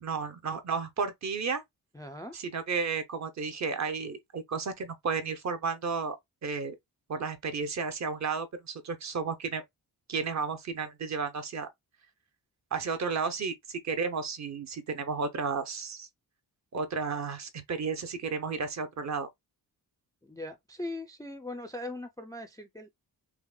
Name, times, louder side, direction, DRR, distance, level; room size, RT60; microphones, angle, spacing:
voice 1, 0.0-1.6 2.5-6.2 6.4-6.8 7.1-9.6 10.1-11.7 12.7-16.1 16.7-19.3, right 5 dB, 45° right, 0.6 m, -33 dB
voice 2, 1.9-2.4 20.2-22.9, left 1 dB, 10° left, 0.3 m, -40 dB
5.7 x 2.1 x 2.2 m
wide cardioid pair, 170°, 39 cm